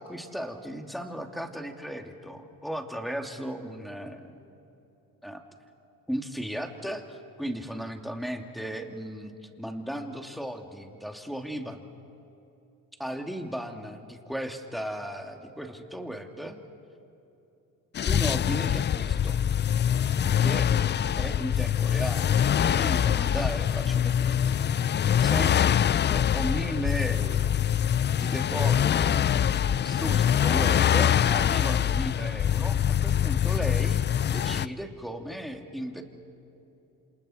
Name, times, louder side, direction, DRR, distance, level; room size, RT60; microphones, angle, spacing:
voice 1, 0.0-4.2 5.2-5.4 6.1-9.3 9.6-11.8 13.0-16.6 18.1-19.4 20.4-20.7 21.2-22.4 22.8-24.6 25.2-27.5 28.2-29.3 29.8-36.0, equal, ahead, 3 dB, 2.5 m, -36 dB
sound 1, 17.9-34.7, left 9 dB, 25° left, 0.4 m, -24 dB
29.0 x 27.0 x 4.4 m, 2.9 s
supercardioid pair, 70°, 44 cm